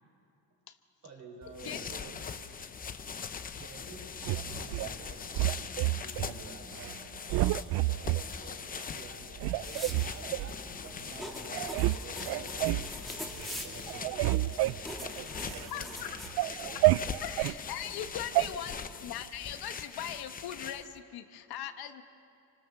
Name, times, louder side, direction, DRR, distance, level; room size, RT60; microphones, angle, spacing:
voice 1, 1.0-2.4 3.4-16.3 17.9-18.6, right 3 dB, 50° right, 3 dB, 4.6 m, -50 dB
sound 1, 1.4-21.0, left 6 dB, 25° left, 0.7 m, -42 dB
sound 2, 4.2-4.9 5.3-6.3 6.7-7.0 7.3-8.2 8.8-8.9 9.4-10.5 11.1-11.2 11.5-12.0 12.3-12.9 13.3-13.6 13.9-15.7 16.1-17.6 18.4-18.5, right 18 dB, 85° right, 0.5 m, -29 dB
sound 3, 9.6-16.3, left 1 dB, ahead, 2.4 m, -44 dB
voice 2, 15.7-16.1 16.4-16.5 16.7-16.8 17.2-18.7 19.0-22.0, left 11 dB, 75° left, 8 dB, 1.4 m, -40 dB
29.0 x 25.0 x 6.6 m, 2.6 s
cardioid pair, 165°, 37 cm